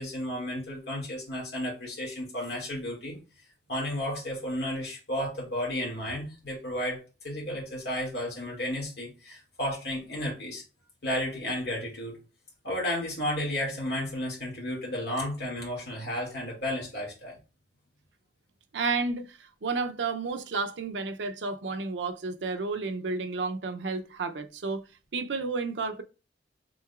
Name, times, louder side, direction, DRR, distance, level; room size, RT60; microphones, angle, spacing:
voice 1, 0.0-3.2 3.7-10.6 11.0-12.2 12.6-17.4, left 1 dB, 70° left, 2.1 m, -33 dB
voice 2, 18.7-24.8 25.1-26.0, right 4 dB, 90° right, 0.6 m, -31 dB
6.1 x 3.7 x 2.4 m
head